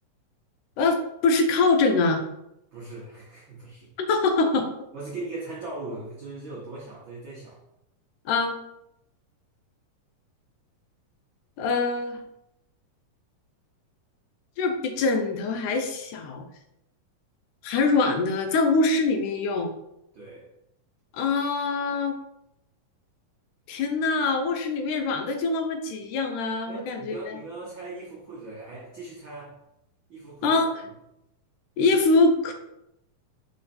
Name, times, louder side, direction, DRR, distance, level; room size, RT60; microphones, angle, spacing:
voice 1, 0.8-2.2 4.0-4.7 8.3-8.5 11.6-12.2 14.6-16.4 17.6-19.7 21.1-22.1 23.7-27.4 30.4-30.7 31.8-32.5, left 3 dB, 75° left, 4 dB, 2.1 m, -24 dB
voice 2, 2.7-3.9 4.9-7.6 20.1-20.5 26.6-29.6 30.1-30.6, right 2 dB, 85° right, -4 dB, 1.0 m, -39 dB
5.5 x 4.3 x 4.2 m, 0.83 s
omnidirectional pair, 3.8 m